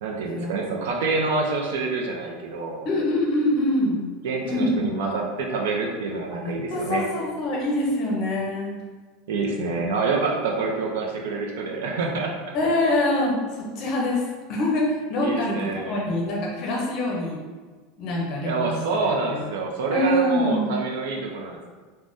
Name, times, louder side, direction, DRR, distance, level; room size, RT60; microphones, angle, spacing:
voice 1, 0.0-2.9 4.2-7.0 9.3-12.4 15.2-16.0 18.4-21.7, right 4 dB, 85° right, 0 dB, 0.4 m, -27 dB
voice 2, 2.8-4.0 4.4-4.8 6.3-8.7 9.6-9.9 12.5-17.4 18.0-18.8 19.3-19.4 19.9-20.7, left 1 dB, 35° left, -2 dB, 0.6 m, -25 dB
3.4 x 2.1 x 2.5 m, 1.4 s
supercardioid pair, 175°, 0 cm